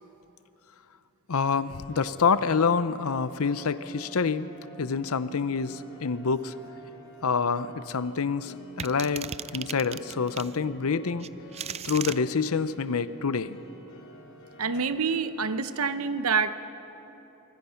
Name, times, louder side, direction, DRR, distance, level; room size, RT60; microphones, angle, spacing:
voice 1, 1.3-4.5 4.8-6.5 7.2-11.3 11.8-13.6, left 5 dB, 80° left, 13 dB, 0.7 m, -27 dB
sound 1, 1.6-15.7, right 1 dB, 60° left, 5.8 m, -50 dB
sound 2, 8.8-10.5 11.2-12.2, right 8 dB, 30° right, 0.4 m, -36 dB
voice 2, 14.6-16.6, right 5 dB, 80° right, 11 dB, 0.8 m, -27 dB
25.5 x 24.0 x 5.8 m, 3.0 s
head